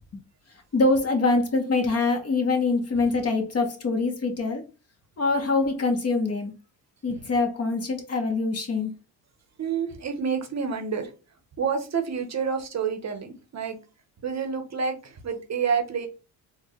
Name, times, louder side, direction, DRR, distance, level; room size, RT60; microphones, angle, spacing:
voice 1, 0.7-4.6 5.2-6.5 7.0-8.9, left 3 dB, 30° left, 1.0 m, -24 dB
voice 2, 9.6-11.1 11.6-13.8 14.2-16.1, right 6 dB, 35° right, 0.8 m, -28 dB
3.9 x 2.3 x 3.0 m
supercardioid pair, 85°, 46 cm